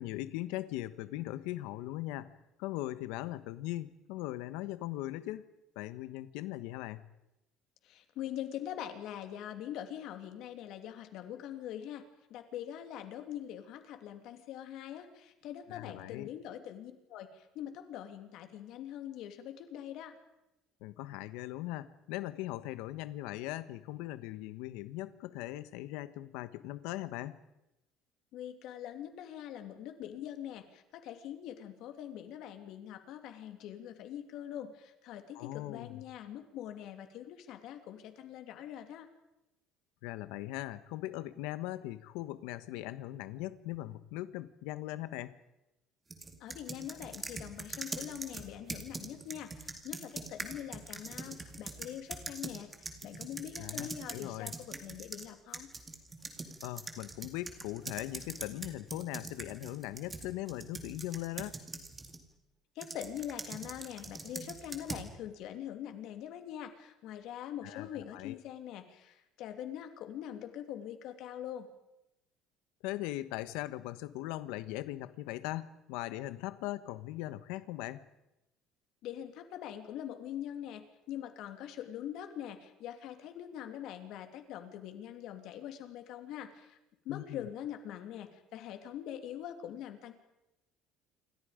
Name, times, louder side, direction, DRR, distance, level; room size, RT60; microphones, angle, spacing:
voice 1, 0.0-2.3 2.6-5.5 5.7-7.1 15.7-16.3 20.8-27.4 35.3-36.0 40.0-45.3 53.6-54.5 56.6-61.6 67.6-68.4 72.8-78.0 87.1-87.5, left 16 dB, 85° left, 13 dB, 1.2 m, -40 dB
voice 2, 7.8-12.0 12.3-20.1 28.3-39.1 46.4-52.7 53.0-55.7 62.7-71.7 79.0-86.8 87.0-90.1, left 10 dB, 55° left, 6 dB, 2.9 m, -43 dB
sound 1, 46.1-55.3 55.5-62.2 62.8-65.1, right 3 dB, 15° right, 2.3 m, -43 dB
28.0 x 25.0 x 5.2 m, 0.93 s
cardioid pair, 170°, 0 cm